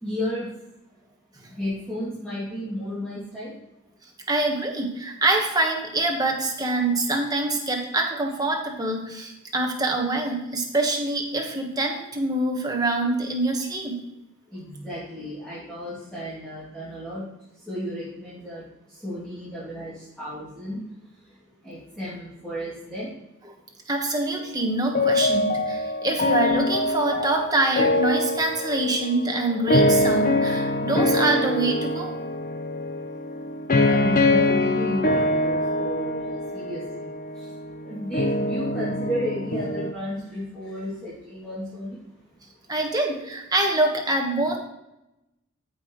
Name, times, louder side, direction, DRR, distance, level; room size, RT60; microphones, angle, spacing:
voice 1, 0.0-0.5 1.5-3.5 14.5-17.2 17.7-18.6 19.0-20.8 21.6-23.1 33.8-37.1 37.4-37.5 37.8-42.0, left 1 dB, 5° left, -10 dB, 2.5 m, -33 dB
voice 2, 4.3-14.0 23.9-32.2 42.7-44.6, right 2 dB, 20° right, 1 dB, 1.3 m, -25 dB
sound 1, 24.9-39.9, left 1 dB, 40° left, 0.8 m, -24 dB
13.5 x 5.5 x 3.1 m, 0.91 s
head